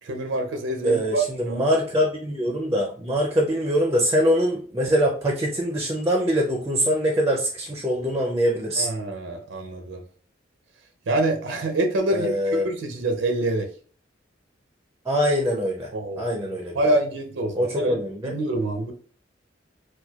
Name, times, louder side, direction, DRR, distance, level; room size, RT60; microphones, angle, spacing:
voice 1, 0.0-1.6 8.8-10.0 11.1-13.7 15.9-16.2 16.7-18.0 18.2-18.9, right 2 dB, 80° right, 5 dB, 0.5 m, -26 dB
voice 2, 0.8-8.9 12.1-12.7 15.1-15.9 16.2-16.9 17.5-18.3, equal, 15° right, 1 dB, 0.4 m, -23 dB
4.3 x 2.2 x 2.2 m, 0.43 s
head